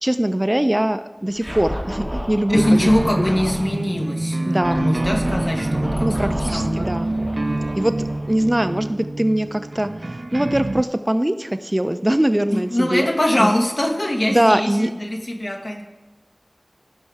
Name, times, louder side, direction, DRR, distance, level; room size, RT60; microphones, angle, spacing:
voice 1, 0.0-2.9 3.2-3.3 4.5-4.9 6.0-7.2 7.8-8.0 8.3-9.9 10.3-13.1 13.4-13.5 14.3-14.9, right 1 dB, 25° right, 10 dB, 0.5 m, -21 dB
Scratching (performance technique), 1.4-3.7 4.6-8.9, equal, 10° left, 3.0 m, -31 dB
voice 2, 2.5-6.9 7.4-7.6 12.5-15.8, left 1 dB, 55° left, 1 dB, 1.3 m, -22 dB
sound 1, 2.5-10.8, right 2 dB, 85° right, 0.3 m, -26 dB
16.0 x 6.5 x 3.5 m, 1.2 s
wide cardioid pair, 45°, 0 cm